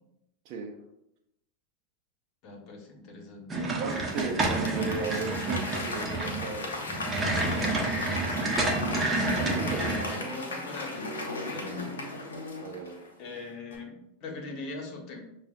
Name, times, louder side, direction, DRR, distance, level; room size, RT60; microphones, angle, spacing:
voice 1, 2.4-3.5 4.3-4.6 7.8-8.7 9.6-11.1 11.5-11.9 13.2-15.2, left 3 dB, 50° left, 1 dB, 1.3 m, -41 dB
sound 1, 3.5-10.2, right 2 dB, 25° right, 0.9 m, -29 dB
voice 2, 3.8-6.9 9.6-10.3 12.6-13.1, right 4 dB, 55° right, 1 dB, 0.5 m, -36 dB
Applause / Crowd, 3.9-13.3 13.7-13.8, left 2 dB, 90° left, 0.7 m, -36 dB
6.6 x 2.4 x 2.5 m, 0.82 s
hypercardioid pair, 95°, 0 cm